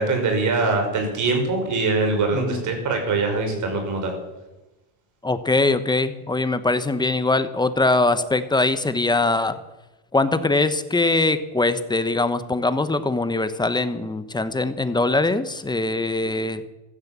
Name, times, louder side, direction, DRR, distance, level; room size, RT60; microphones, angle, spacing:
voice 1, 0.0-4.1, right 3 dB, 45° right, 4 dB, 5.6 m, -23 dB
voice 2, 5.2-9.6 10.1-16.6, left 2 dB, 10° left, 11 dB, 1.1 m, -22 dB
15.5 x 12.5 x 7.5 m, 1.0 s
cardioid pair, 130°, 43 cm